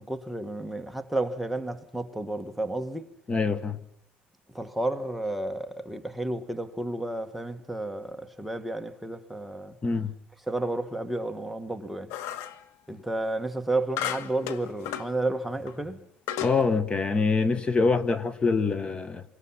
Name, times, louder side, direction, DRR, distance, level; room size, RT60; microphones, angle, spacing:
voice 1, 0.0-3.1 4.5-9.7 10.5-12.1 12.9-16.0, right 2 dB, ahead, 1.5 m, -31 dB
voice 2, 3.3-3.8 9.8-10.1 16.4-19.2, left 4 dB, 25° left, 1.5 m, -25 dB
sound 1, 12.1-12.6 14.0-15.1 15.7-15.8 16.3-16.6, left 11 dB, 85° left, 1.9 m, -33 dB
28.5 x 25.0 x 5.7 m
cardioid pair, 130°, 4 cm